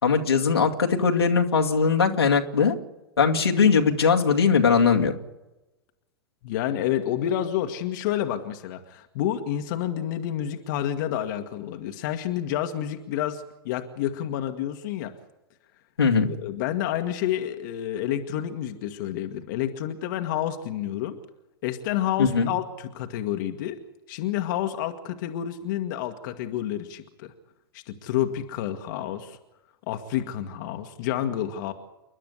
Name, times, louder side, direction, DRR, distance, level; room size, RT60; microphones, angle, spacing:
voice 1, 0.0-2.7 3.2-5.1 16.0-16.3 22.2-22.5, left 5 dB, 80° left, 1 dB, 2.3 m, -20 dB
voice 2, 6.4-15.1 16.2-21.2 21.6-23.8 24.1-27.3 27.7-29.4 29.9-31.7, left 11 dB, 50° left, 6 dB, 1.7 m, -29 dB
29.5 x 11.5 x 8.2 m, 1.0 s
figure-of-eight pair, 105°, 13 cm